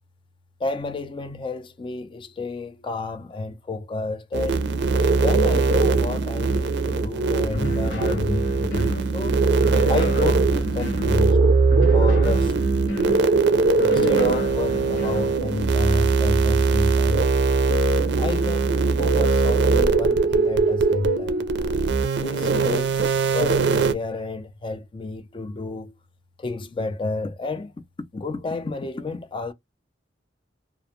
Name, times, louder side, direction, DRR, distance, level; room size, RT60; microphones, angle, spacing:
voice 1, 0.6-4.7 5.2-9.4 9.9-11.4 11.9-12.5 13.9-17.3 18.2-21.4 22.2-25.9 26.4-27.7 28.1-29.5, left 3 dB, 30° left, 0.4 m, -30 dB
sound 1, 4.3-23.9, right 4 dB, 65° right, 0.4 m, -20 dB
sound 2, 7.5-9.1 9.6-11.2 11.7-13.2 13.8-15.3, left 2 dB, 70° left, 1.1 m, -32 dB
2.4 x 2.1 x 2.7 m
head